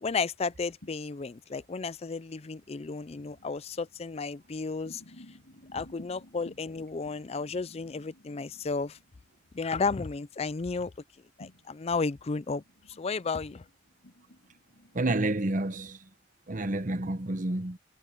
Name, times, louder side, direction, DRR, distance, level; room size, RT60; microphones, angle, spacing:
voice 1, 0.0-5.0 5.7-9.0 9.5-10.9 11.4-12.6 13.0-13.6, left 4 dB, 35° left, 0.4 m, -33 dB
sound 1, 0.8-15.9, left 1 dB, 85° left, 4.0 m, -55 dB
voice 2, 14.9-16.0 16.5-17.8, right 2 dB, 45° right, 1.0 m, -29 dB
head